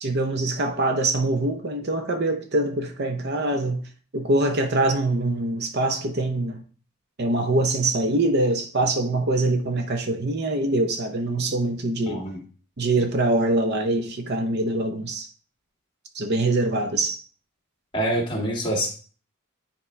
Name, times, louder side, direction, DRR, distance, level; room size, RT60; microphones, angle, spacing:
voice 1, 0.0-3.8 4.1-6.6 7.2-12.2 12.8-15.3 16.1-17.2, right 2 dB, 50° right, 0.7 m, -24 dB
voice 2, 12.1-12.4 17.9-18.9, right 1 dB, 20° left, 2.0 m, -25 dB
9.6 x 4.3 x 3.3 m
head